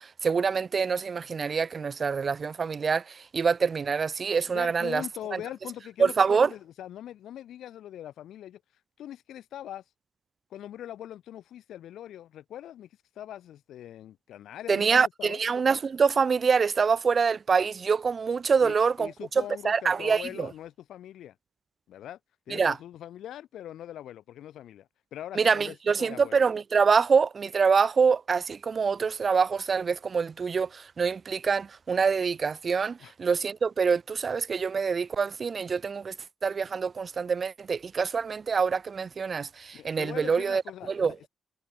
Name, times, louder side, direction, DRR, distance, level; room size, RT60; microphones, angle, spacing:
voice 1, 0.0-5.0 5.3-5.4 6.0-6.5 14.7-19.1 19.6-20.5 22.5-22.8 25.4-36.1 36.4-40.6 40.9-41.2, right 5 dB, 40° right, 0.4 m, -25 dB
voice 2, 4.4-8.6 9.0-9.8 10.5-12.9 13.1-15.4 18.6-21.3 21.9-22.2 22.5-26.4 33.0-33.1 39.7-41.3, left 11 dB, 75° left, 1.8 m, -42 dB
cardioid pair, 100°, 0 cm